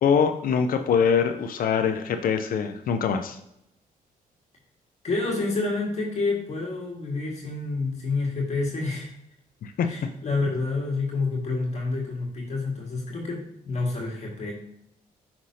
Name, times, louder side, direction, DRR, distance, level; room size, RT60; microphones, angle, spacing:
voice 1, 0.0-3.4 9.6-9.9, left 6 dB, 65° left, 7 dB, 0.6 m, -23 dB
voice 2, 5.0-9.1 9.9-14.5, left 3 dB, 45° left, -2 dB, 1.8 m, -28 dB
6.2 x 5.9 x 2.8 m, 0.79 s
cardioid pair, 95°, 15 cm